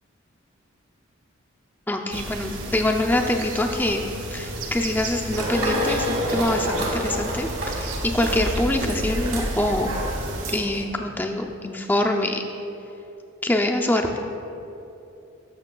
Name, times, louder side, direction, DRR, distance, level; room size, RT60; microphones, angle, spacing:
voice 1, 1.9-4.0 4.3-9.9 10.5-12.4 13.4-14.2, left 1 dB, 10° left, 3 dB, 0.4 m, -24 dB
sound 1, 2.1-10.6, right 1 dB, 65° right, 0.8 m, -32 dB
sound 2, 5.3-10.8, equal, 90° right, 1.7 m, -29 dB
12.5 x 6.4 x 2.2 m, 2.8 s
head